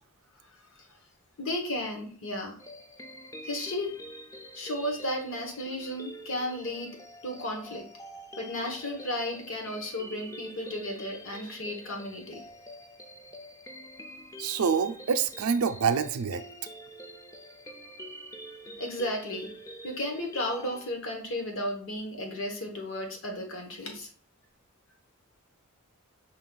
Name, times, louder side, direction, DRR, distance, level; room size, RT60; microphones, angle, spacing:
voice 1, 1.4-2.6 3.4-4.0 4.5-6.9 7.2-7.9 8.4-12.4 18.8-19.5 19.8-24.1, left 1 dB, 65° left, 2 dB, 1.0 m, -34 dB
sound 1, 2.6-20.9, equal, 15° left, 0.3 m, -46 dB
voice 2, 14.4-16.4, right 6 dB, 80° right, 8 dB, 0.4 m, -26 dB
5.0 x 2.3 x 3.8 m, 0.43 s
head